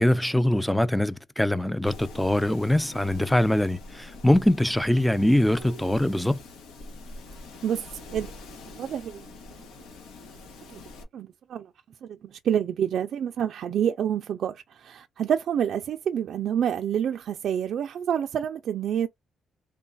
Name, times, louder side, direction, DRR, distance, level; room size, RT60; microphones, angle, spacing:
voice 1, 0.0-6.4, left 1 dB, 5° left, 0.4 m, -23 dB
Wind, 1.8-11.0, left 2 dB, 90° left, 1.2 m, -44 dB
voice 2, 7.6-8.3 8.8-9.3 10.7-10.8 11.1-11.7 12.0-19.1, right 9 dB, 65° right, 0.3 m, -28 dB
3.7 x 2.3 x 3.9 m
cardioid pair, 90°, 0 cm